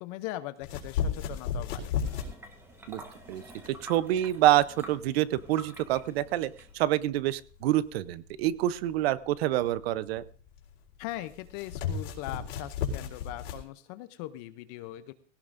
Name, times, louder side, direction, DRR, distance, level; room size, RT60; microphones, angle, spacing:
voice 1, 0.0-1.9 11.0-15.1, left 15 dB, 30° left, 13 dB, 0.6 m, -40 dB
sound 1, 0.6-13.6, left 7 dB, 70° left, 3.8 m, -36 dB
sound 2, 1.9-7.0, right 2 dB, 5° right, 1.3 m, -48 dB
voice 2, 3.3-10.2, right 14 dB, 50° right, 17 dB, 0.8 m, -27 dB
19.5 x 17.0 x 2.6 m, 0.41 s
supercardioid pair, 155°, 38 cm